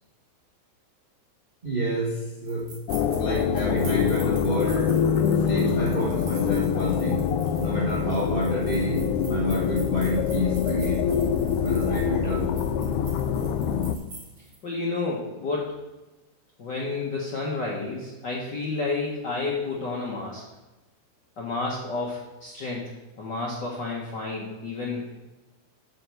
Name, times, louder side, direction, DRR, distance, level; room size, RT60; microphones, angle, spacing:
voice 1, 1.6-2.7 3.2-5.0 5.4-7.2 7.6-11.0 11.6-12.6, right 1 dB, 80° right, -3 dB, 0.4 m, -29 dB
sound 1, 2.5-14.6, right 3 dB, 55° right, 3.3 m, -46 dB
sound 2, 2.9-14.0, left 7 dB, 85° left, 2.0 m, -25 dB
voice 2, 14.6-15.8 16.6-20.4 21.4-22.9 23.2-25.3, left 3 dB, 55° left, -3 dB, 1.2 m, -30 dB
8.5 x 4.6 x 7.4 m, 1.1 s
omnidirectional pair, 3.4 m